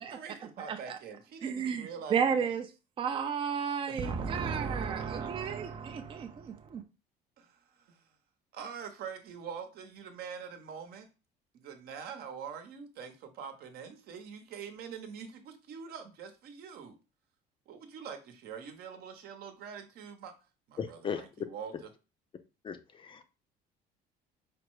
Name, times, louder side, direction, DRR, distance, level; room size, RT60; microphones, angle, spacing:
voice 1, 0.0-2.5 3.9-5.8 7.4-8.1 8.5-11.1 11.5-17.0 17.7-20.3 20.7-21.9, right 7 dB, 60° right, 0.9 m, -45 dB
voice 2, 1.4-2.6 3.0-6.8, right 6 dB, 30° right, 0.5 m, -32 dB
voice 3, 20.8-21.3 22.6-23.2, left 7 dB, 30° left, 0.4 m, -37 dB
5.0 x 2.1 x 4.6 m
cardioid pair, 135°, 18 cm